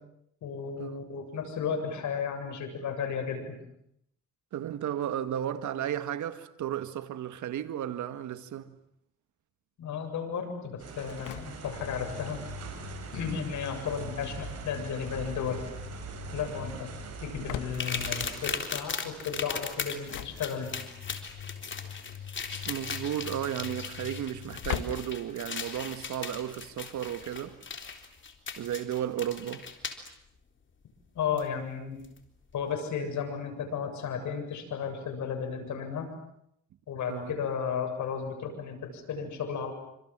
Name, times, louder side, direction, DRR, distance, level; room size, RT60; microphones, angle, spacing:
voice 1, 0.4-3.5 9.8-12.4 13.1-15.6 16.3-16.9 17.2-20.7 31.1-32.0 32.5-36.1 36.9-39.7, left 6 dB, 70° left, 7.6 m, -34 dB
voice 2, 4.5-8.7 22.7-27.6 28.6-29.7 37.1-37.3, right 10 dB, 75° right, 2.0 m, -34 dB
sound 1, 10.8-18.5, right 6 dB, 55° right, 7.2 m, -42 dB
Engine / Slam, 10.9-26.0, left 9 dB, 85° left, 1.9 m, -43 dB
sound 2, 17.7-30.1 31.4-31.5 32.0-32.2, left 5 dB, 40° left, 3.8 m, -38 dB
27.5 x 26.5 x 7.6 m
cardioid pair, 90°, 30 cm